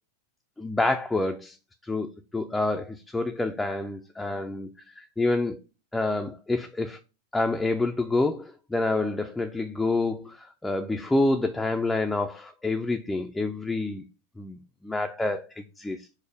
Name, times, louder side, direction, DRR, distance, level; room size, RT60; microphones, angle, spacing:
voice 1, 0.6-1.6 1.8-5.6 5.9-7.0 7.3-14.0 14.4-16.1, left 2 dB, 5° left, 0.3 m, -28 dB
5.0 x 2.0 x 4.7 m
figure-of-eight pair, 90°, 0 cm